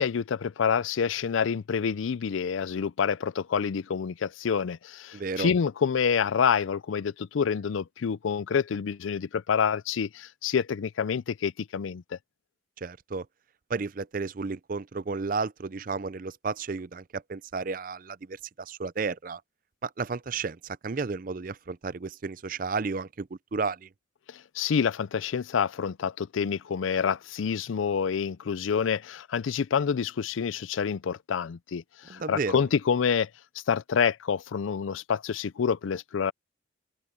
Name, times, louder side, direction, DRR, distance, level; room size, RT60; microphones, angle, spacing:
voice 1, 0.0-12.2 24.3-33.3 33.7-36.3, left 6 dB, 85° left, 0.4 m, -27 dB
voice 2, 5.1-5.5 12.8-13.3 13.7-19.4 19.8-23.9 32.1-32.6, right 4 dB, 45° right, 0.5 m, -33 dB
head